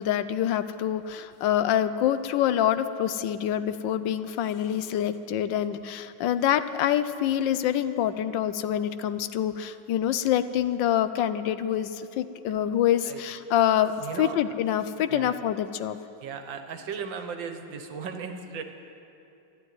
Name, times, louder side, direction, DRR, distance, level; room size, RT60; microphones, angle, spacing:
voice 1, 0.0-13.9 14.2-16.0, left 10 dB, 80° left, 12 dB, 1.3 m, -26 dB
voice 2, 14.0-14.4 15.1-15.4 16.2-18.6, right 6 dB, 75° right, 7 dB, 1.8 m, -36 dB
13.0 x 11.5 x 9.4 m, 2.8 s
omnidirectional pair, 2.1 m